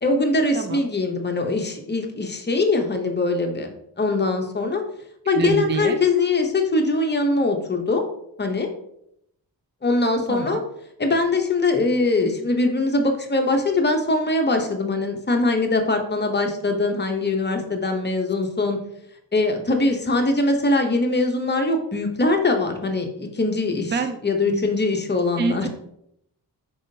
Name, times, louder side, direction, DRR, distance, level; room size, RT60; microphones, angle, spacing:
voice 1, 0.0-4.8 5.3-8.0 8.4-8.7 9.8-10.6 11.0-18.8 19.3-24.0 24.2-25.7, left 2 dB, 25° left, 4 dB, 0.8 m, -22 dB
voice 2, 5.3-6.0 10.3-10.6 23.8-24.2 24.5-24.7 25.4-25.7, right 4 dB, 25° right, 7 dB, 0.5 m, -26 dB
5.2 x 3.5 x 2.7 m, 0.75 s
cardioid pair, 65°, 45 cm